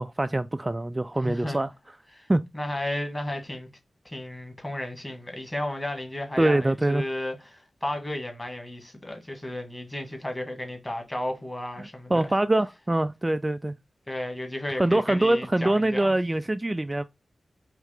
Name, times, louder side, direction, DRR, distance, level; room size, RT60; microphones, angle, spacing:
voice 1, 0.0-1.7 2.3-2.4 6.4-7.0 11.8-13.7 14.8-17.0, right 1 dB, 25° right, 0.3 m, -24 dB
voice 2, 1.2-1.6 2.1-2.3 2.5-3.7 4.1-12.3 14.1-16.1, left 1 dB, 20° left, 1.9 m, -33 dB
4.8 x 3.2 x 3.4 m
cardioid pair, 60°, 0 cm